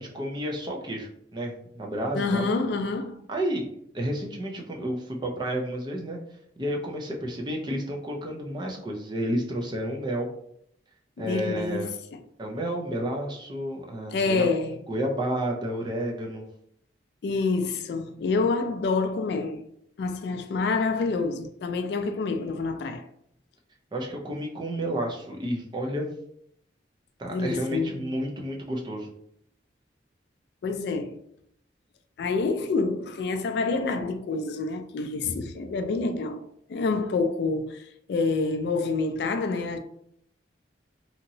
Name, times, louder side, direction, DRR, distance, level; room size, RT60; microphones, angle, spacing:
voice 1, 0.0-2.5 3.3-3.7 3.9-6.2 6.6-10.3 11.2-12.0 12.4-14.5 14.9-16.5 23.9-26.1 27.2-29.1, right 1 dB, 25° right, 0.5 m, -31 dB
voice 2, 2.1-3.2 11.2-12.2 14.1-14.8 17.2-19.7 20.0-23.0 27.3-28.1 30.6-31.2 32.2-36.4 36.7-39.8, left 3 dB, 65° left, 0.3 m, -27 dB
2.9 x 2.7 x 2.6 m
head